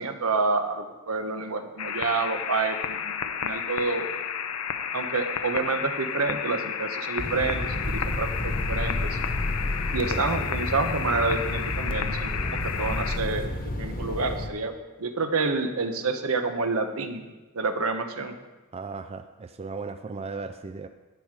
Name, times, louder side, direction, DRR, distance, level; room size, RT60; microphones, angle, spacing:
voice 1, 0.0-3.1 3.4-4.1 4.9-9.2 9.9-17.3 17.5-18.4, right 3 dB, 75° right, 7 dB, 1.1 m, -28 dB
sound 1, 1.8-13.2, left 7 dB, 80° left, 0.7 m, -32 dB
sound 2, 7.2-14.5, left 1 dB, 40° left, 1.2 m, -32 dB
sound 3, 7.8-11.2 11.8-13.5, left 2 dB, 25° left, 0.8 m, -33 dB
voice 2, 10.1-10.5 18.7-20.9, right 4 dB, 30° right, 8 dB, 0.4 m, -36 dB
11.5 x 9.2 x 4.9 m, 1.2 s
head